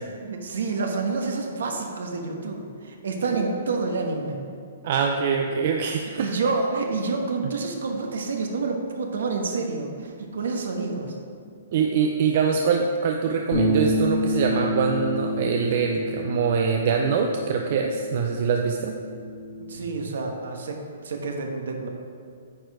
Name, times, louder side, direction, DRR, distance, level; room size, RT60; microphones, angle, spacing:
voice 1, 0.2-4.4 6.2-11.1 19.7-20.8 21.0-21.9, right 3 dB, 75° right, 3 dB, 1.2 m, -28 dB
voice 2, 4.8-6.3 11.7-18.9, right 6 dB, 55° right, 3 dB, 0.5 m, -24 dB
sound 1, 13.5-19.8, equal, 55° left, 2.1 m, -28 dB
9.1 x 4.5 x 4.8 m, 2.2 s
hypercardioid pair, 140°, 0 cm